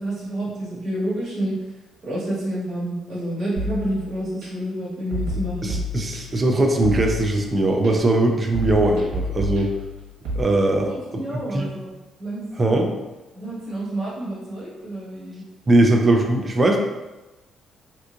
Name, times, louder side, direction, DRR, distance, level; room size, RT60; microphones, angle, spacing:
voice 1, 0.0-1.7 2.0-5.8 10.7-11.9 12.2-12.8 13.3-15.4, right 1 dB, 40° right, -8 dB, 1.4 m, -29 dB
sound 1, 3.6-4.5 5.1-6.5 6.8-7.9 8.5-10.4, left 1 dB, 85° right, 1.1 m, -29 dB
voice 2, 5.6-9.7 10.4-11.2 11.5-11.7 12.6-12.9 15.7-16.8, right 2 dB, 20° right, 2 dB, 0.3 m, -20 dB
3.4 x 2.9 x 2.4 m, 1.1 s
cardioid pair, 160°, 0 cm